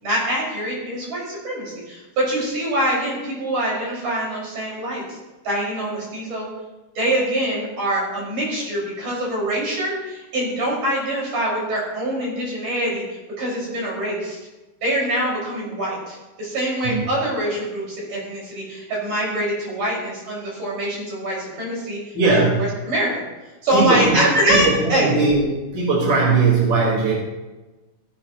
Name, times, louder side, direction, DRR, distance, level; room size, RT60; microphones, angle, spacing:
voice 1, 0.0-5.2 5.4-6.5 7.0-13.0 13.4-14.4 14.8-22.0 22.3-23.2 23.6-25.1, right 1 dB, 50° right, -5 dB, 6.9 m, -24 dB
voice 2, 22.1-22.7 23.7-27.1, right 3 dB, 30° right, -4 dB, 4.8 m, -19 dB
18.0 x 17.0 x 3.1 m, 1.1 s
omnidirectional pair, 4.7 m